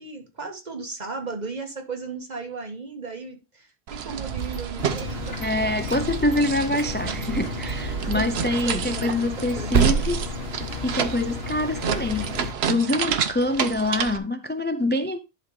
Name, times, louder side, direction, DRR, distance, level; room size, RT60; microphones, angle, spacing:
voice 1, 0.0-5.5 8.0-8.3 8.7-10.1, right 4 dB, 45° right, 1.8 m, -36 dB
sound 1, 3.9-14.2, right 8 dB, 85° right, 1.1 m, -30 dB
sound 2, 4.3-5.5 5.8-6.9 7.2-7.3 7.7-7.8 8.1-8.2 8.6-11.2, right 7 dB, 65° right, 1.1 m, -28 dB
sound 3, 4.8-12.5, left 6 dB, 75° left, 1.5 m, -34 dB
voice 2, 5.4-10.3 10.8-15.2, left 1 dB, 15° left, 0.4 m, -25 dB
11.0 x 3.9 x 4.9 m
omnidirectional pair, 1.0 m